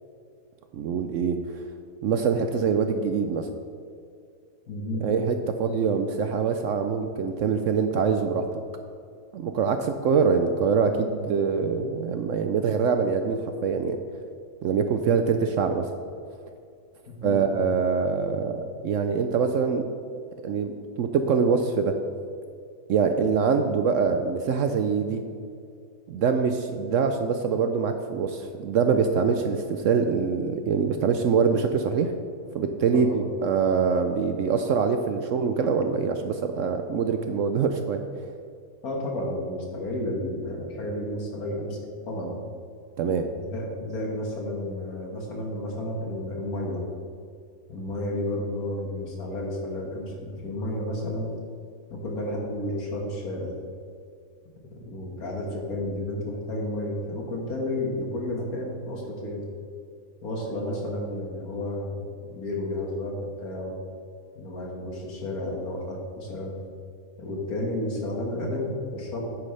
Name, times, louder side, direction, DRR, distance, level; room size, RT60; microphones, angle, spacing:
voice 1, 0.7-1.6 2.0-3.5 5.0-8.5 9.3-14.0 14.6-15.9 17.2-19.8 20.4-21.9 22.9-25.2 26.1-32.1 32.5-38.0 43.0-43.3, right 5 dB, 65° right, 7 dB, 0.8 m, -24 dB
voice 2, 4.7-5.1 17.1-17.4 32.9-33.3 38.8-41.8 42.1-42.3 43.3-46.8 47.7-51.3 51.9-53.5 54.7-59.4 60.2-63.7 64.4-66.5 67.2-69.3, left 1 dB, 70° left, -1 dB, 2.2 m, -32 dB
9.4 x 9.0 x 3.3 m, 2.4 s
omnidirectional pair, 1.6 m